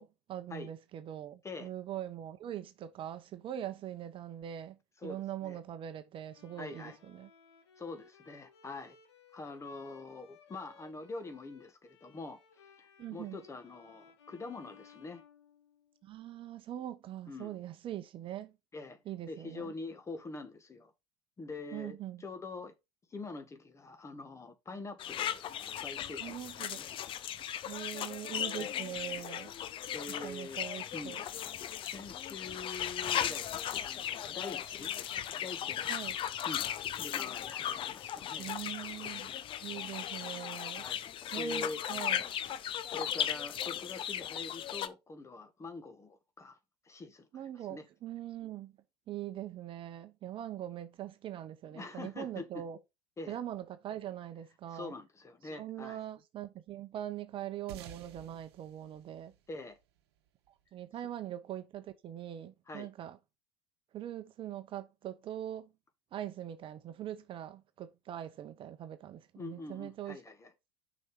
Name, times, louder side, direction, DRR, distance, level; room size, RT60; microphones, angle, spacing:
voice 1, 0.0-4.8 5.0-7.3 13.0-13.4 16.0-18.6 19.1-19.7 21.7-22.2 26.2-26.8 27.7-29.5 30.2-31.2 35.9-36.2 38.4-39.3 39.6-40.8 41.3-42.2 47.3-48.7 49.1-52.8 53.3-54.9 55.5-59.3 60.7-63.2 63.9-65.7 66.1-70.2, right 11 dB, 40° right, 0.8 m, -42 dB
voice 2, 5.0-5.6 6.6-7.0 7.8-9.0 9.3-12.4 12.8-15.2 17.3-17.6 18.7-19.0 19.3-20.9 21.4-22.7 23.1-26.5 26.7-26.9 28.6-28.7 29.9-30.7 30.9-31.2 31.8-34.9 35.4-35.9 36.4-36.7 37.0-38.5 40.7-41.1 41.3-41.8 42.9-46.6 46.8-47.4 47.7-47.8 51.7-52.6 53.2-53.4 54.7-56.0 59.5-59.8 62.7-62.9 69.4-70.5, left 3 dB, 20° left, 1.6 m, -44 dB
Bowed string instrument, 6.3-16.1, left 7 dB, 75° left, 1.5 m, -60 dB
sound 1, 25.0-44.9, left 10 dB, 40° left, 0.7 m, -37 dB
sound 2, 57.7-60.5, right 9 dB, 65° right, 1.1 m, -52 dB
6.4 x 5.2 x 4.5 m
figure-of-eight pair, 75°, 14 cm